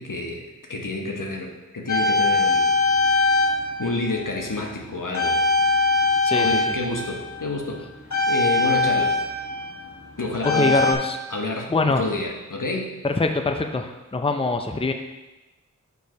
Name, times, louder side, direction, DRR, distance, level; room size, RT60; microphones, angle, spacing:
voice 1, 0.0-2.7 3.2-3.4 3.8-5.4 6.3-7.8 8.3-9.1 10.2-10.9 11.3-12.9, left 2 dB, 80° left, 0 dB, 1.1 m, -29 dB
sound 1, 1.9-4.8 5.1-10.9, left 3 dB, 65° left, 1.5 m, -22 dB
voice 2, 6.2-6.6 10.5-11.2 11.7-12.1 13.0-14.9, left 3 dB, 20° left, 5 dB, 0.5 m, -23 dB
6.8 x 4.6 x 5.2 m, 1.1 s
wide cardioid pair, 45°, 32 cm